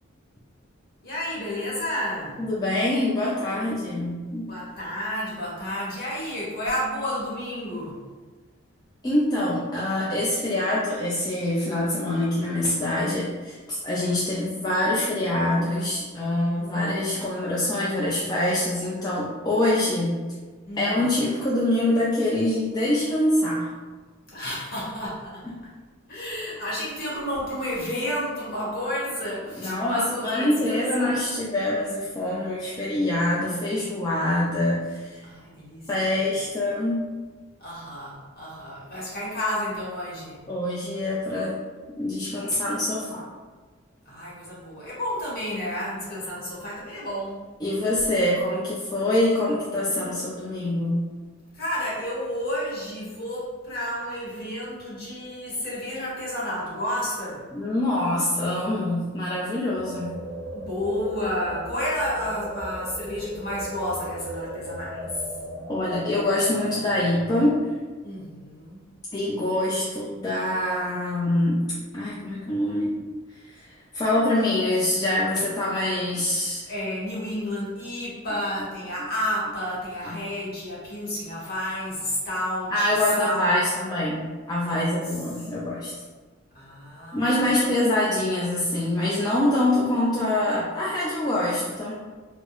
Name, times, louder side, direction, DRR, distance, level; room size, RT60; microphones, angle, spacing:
voice 1, 1.0-2.4 3.6-3.7 4.5-8.0 16.5-17.3 20.7-21.1 24.3-25.5 26.1-31.2 35.2-36.1 37.6-40.4 44.0-47.5 51.5-57.5 60.5-65.3 68.0-68.8 76.7-83.7 84.6-84.9 85.4-85.5 86.5-87.7, equal, 50° left, -7 dB, 1.3 m, -31 dB
voice 2, 2.4-4.5 9.0-20.2 20.8-23.7 29.6-35.3 35.9-37.1 40.5-41.6 42.0-43.3 47.6-51.0 57.5-60.1 65.7-67.7 69.1-71.6 71.9-73.0 73.3-76.7 80.0-80.2 82.7-85.9 87.1-92.0, left 1 dB, 20° left, -6 dB, 0.4 m, -25 dB
sound 1, 59.8-67.6, equal, 40° right, 0.7 m, -37 dB
4.2 x 2.0 x 2.9 m, 1.4 s
head